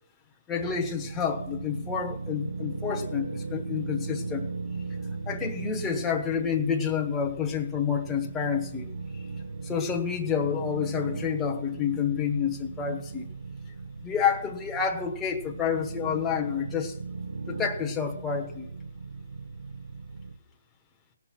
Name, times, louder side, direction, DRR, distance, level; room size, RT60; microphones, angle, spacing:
voice 1, 0.5-4.5 5.3-8.9 9.6-13.2 14.0-16.9 17.5-18.7, left 7 dB, 15° left, 2 dB, 1.1 m, -29 dB
sound 1, 0.6-20.3, right 4 dB, 80° right, 1.0 m, -38 dB
17.5 x 6.0 x 6.0 m, 0.71 s
hypercardioid pair, 150°, 0 cm